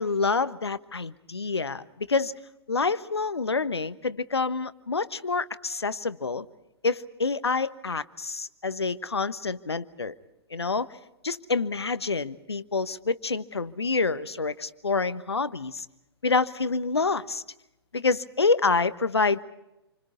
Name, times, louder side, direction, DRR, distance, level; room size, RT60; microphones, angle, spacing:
voice 1, 0.0-2.4 2.7-6.5 6.8-10.1 10.5-10.9 11.2-15.8 16.2-17.4 17.9-19.4, left 4 dB, 75° left, 14 dB, 1.2 m, -27 dB
28.5 x 26.0 x 5.3 m, 0.92 s
figure-of-eight pair, 115°, 14 cm